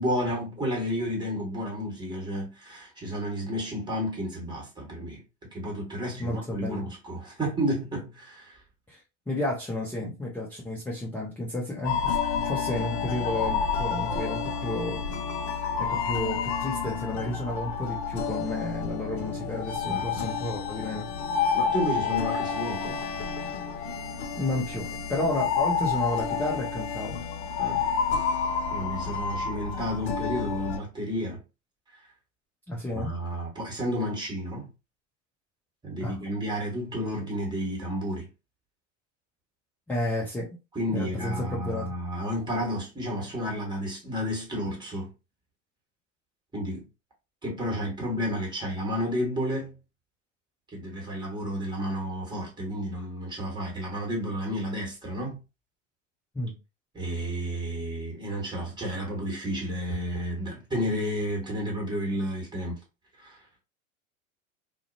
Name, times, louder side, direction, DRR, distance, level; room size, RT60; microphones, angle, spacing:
voice 1, 0.0-5.2 5.5-8.6 10.0-10.1 19.9-20.3 21.5-23.0 27.6-27.8 28.7-31.4 32.9-34.7 35.8-38.3 40.7-45.1 46.5-46.9 47.4-49.8 50.7-55.4 56.9-62.8 63.2-63.4, equal, 10° right, 1.3 m, -31 dB
voice 2, 6.2-6.8 8.9-9.0 9.3-15.0 15.8-21.1 24.4-27.2 32.7-33.2 36.0-36.2 39.9-40.6 40.9-41.9 56.3-56.5, left 1 dB, 5° left, 0.4 m, -31 dB
sound 1, 11.8-30.8, left 6 dB, 55° left, 0.5 m, -29 dB
2.4 x 2.1 x 2.6 m
hypercardioid pair, 90°, 39 cm